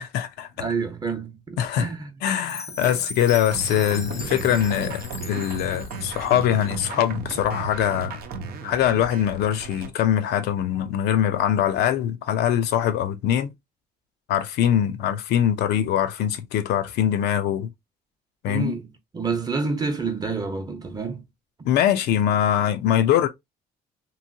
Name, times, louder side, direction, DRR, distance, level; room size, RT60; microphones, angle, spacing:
voice 1, 0.0-0.5 1.6-1.9 2.2-8.2 8.6-13.5 14.3-17.7 18.4-18.7 21.7-23.3, left 10 dB, 75° left, 0.5 m, -22 dB
voice 2, 0.6-2.1 2.7-3.0 18.5-18.9 19.1-21.3, right 4 dB, 25° right, 0.8 m, -28 dB
Chime, 2.5-6.5, left 3 dB, 20° left, 0.6 m, -39 dB
sound 1, 3.5-9.9, right 4 dB, 65° right, 0.7 m, -35 dB
3.0 x 2.7 x 2.6 m
cardioid pair, 110°, 17 cm